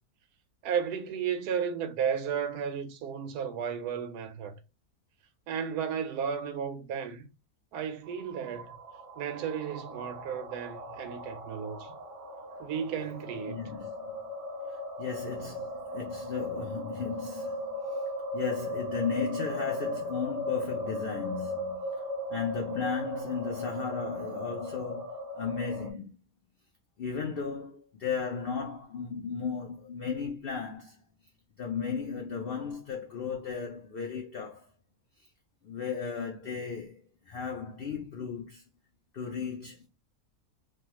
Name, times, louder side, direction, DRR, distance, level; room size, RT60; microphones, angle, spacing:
voice 1, 0.6-4.5 5.5-7.3 7.7-8.8 9.2-12.0 12.6-13.6, right 7 dB, 85° right, 1.1 m, -33 dB
sound 1, 8.1-25.9, left 1 dB, 60° right, 1.0 m, -37 dB
voice 2, 13.5-14.3 15.0-18.0 18.3-21.8 22.3-26.2 27.0-31.0 31.6-34.7 35.6-38.6 39.1-39.9, left 6 dB, 75° left, 0.5 m, -35 dB
3.2 x 2.2 x 2.9 m
omnidirectional pair, 1.6 m